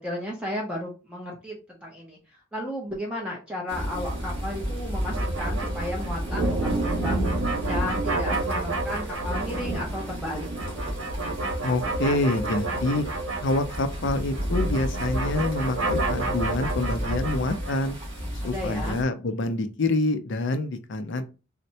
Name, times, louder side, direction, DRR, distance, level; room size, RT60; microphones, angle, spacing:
voice 1, 0.0-2.2 2.5-7.2 7.7-10.5 18.4-19.0, left 1 dB, 5° right, -3 dB, 0.7 m, -34 dB
sound 1, 3.7-19.0, right 1 dB, 30° right, 1.5 m, -31 dB
sound 2, 5.1-14.0 14.3-17.9, right 2 dB, 85° right, 1.0 m, -31 dB
voice 2, 11.6-13.0 13.4-18.0 18.4-21.2, left 2 dB, 60° left, 9 dB, 0.5 m, -26 dB
4.2 x 2.1 x 2.7 m, 0.31 s
head